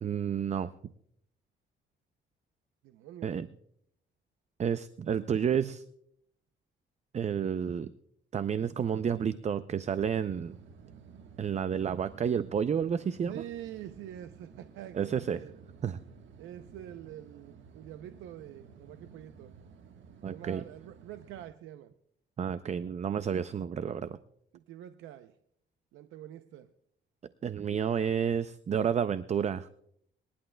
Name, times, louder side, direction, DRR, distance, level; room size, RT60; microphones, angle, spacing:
voice 1, 0.0-0.7 3.2-3.5 4.6-5.8 7.1-7.9 8.3-10.6 11.4-13.4 14.9-15.4 15.8-16.0 20.2-20.6 22.4-24.2 27.4-29.7, right 8 dB, 35° right, 14 dB, 0.5 m, -30 dB
voice 2, 2.8-3.3 13.3-15.5 16.4-19.5 20.3-21.9 24.5-25.3 25.9-26.7, right 12 dB, 90° right, 10 dB, 0.6 m, -45 dB
sound 1, 10.2-21.5, right 6 dB, 70° right, 1.3 m, -54 dB
26.0 x 11.0 x 2.2 m, 0.71 s
cardioid pair, 90°, 20 cm